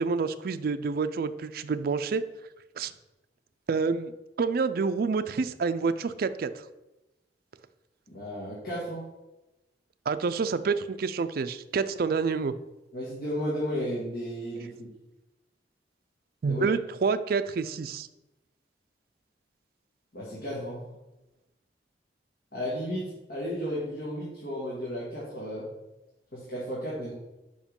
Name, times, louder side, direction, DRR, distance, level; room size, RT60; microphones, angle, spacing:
voice 1, 0.0-2.2 2.8-2.9 3.7-4.1 4.4-6.5 10.1-12.6 16.4-18.1, right 5 dB, 55° right, 11 dB, 0.4 m, -28 dB
voice 2, 8.1-9.0 12.9-14.9 16.4-16.6 20.1-20.8 22.5-25.7 26.3-27.1, equal, 60° left, -7 dB, 1.8 m, -33 dB
5.3 x 5.0 x 5.2 m, 0.99 s
head